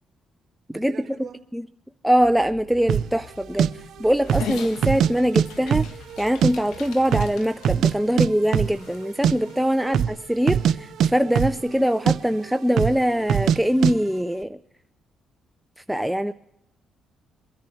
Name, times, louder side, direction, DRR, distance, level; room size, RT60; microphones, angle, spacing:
voice 1, 0.7-1.4 9.8-10.0, right 6 dB, 45° right, 5 dB, 2.2 m, -43 dB
voice 2, 2.0-3.7 4.0-5.9 6.2-14.6 15.9-16.3, equal, 5° right, 10 dB, 0.4 m, -22 dB
sound 1, 2.2-7.3, left 3 dB, 55° left, 5.1 m, -48 dB
sound 2, 2.9-3.1 3.6-3.7 4.2-4.5 4.8-5.5 5.7-6.5 6.8-6.9 7.1-7.9 8.2-8.3 8.5-8.8 9.0-9.3 9.9-10.2 10.4-11.8 12.1-12.2 12.7-13.0 13.3-13.6 13.8-13.9, right 9 dB, 70° right, 0.5 m, -21 dB
Dog, 4.3-9.6, left 7 dB, 90° left, 1.5 m, -40 dB
23.0 x 10.5 x 4.5 m, 0.81 s
cardioid pair, 90°, 0 cm